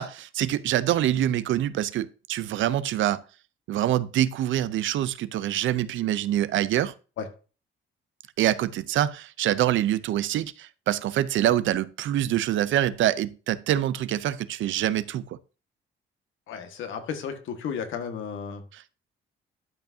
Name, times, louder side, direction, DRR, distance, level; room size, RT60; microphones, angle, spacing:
voice 1, 0.0-3.2 3.7-6.9 8.4-15.4 18.7-18.9, right 12 dB, 75° right, 0.7 m, -25 dB
voice 2, 16.5-18.6, left 7 dB, 80° left, 1.7 m, -33 dB
12.0 x 6.0 x 2.7 m
cardioid pair, 90°, 20 cm